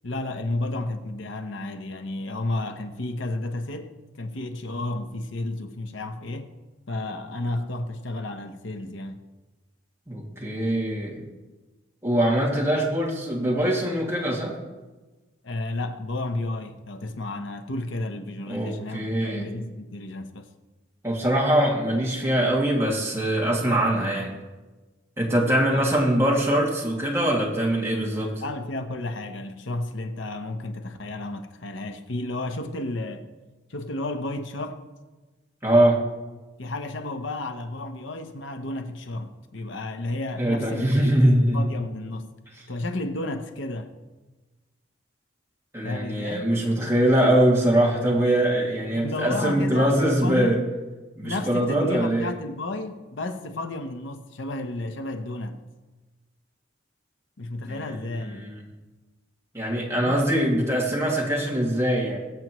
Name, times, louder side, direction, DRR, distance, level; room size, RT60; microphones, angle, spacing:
voice 1, 0.0-6.5 6.9-9.2 15.4-20.5 25.7-25.8 28.4-33.3 33.7-34.8 36.6-42.3 42.7-43.9 45.8-46.4 48.9-50.6 51.2-55.6 57.4-58.5 60.0-60.2, left 2 dB, 75° left, 0.9 m, -32 dB
voice 2, 10.1-11.2 12.0-14.5 18.5-19.5 21.0-24.3 25.2-28.3 35.6-36.0 40.4-41.8 45.7-50.6 51.1-52.3 57.7-58.6 59.5-62.2, right 1 dB, 15° right, 2.3 m, -23 dB
22.5 x 7.9 x 3.1 m
head